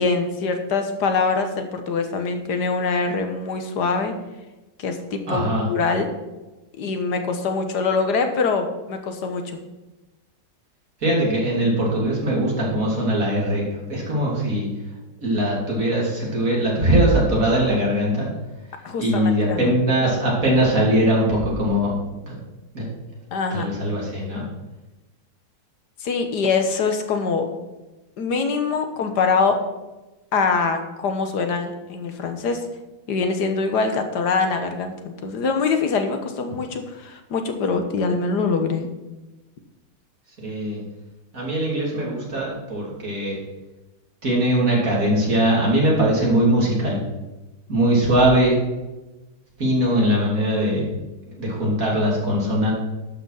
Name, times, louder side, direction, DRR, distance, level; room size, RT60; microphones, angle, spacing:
voice 1, 0.0-4.1 4.8-5.4 5.7-6.1 6.8-9.6 18.8-19.7 23.3-23.7 26.0-27.5 28.2-29.6 30.3-32.6 33.1-38.8, left 4 dB, 70° left, 6 dB, 1.7 m, -23 dB
voice 2, 5.3-5.7 11.0-13.6 13.9-14.7 15.2-18.3 19.0-21.9 22.2-22.4 22.7-22.8 23.5-24.4 40.4-40.8 41.3-43.4 44.2-47.0 47.7-48.6 49.6-50.9 51.3-52.7, right 1 dB, 50° right, -4 dB, 3.4 m, -21 dB
12.0 x 6.0 x 5.7 m, 1.1 s
omnidirectional pair, 1.9 m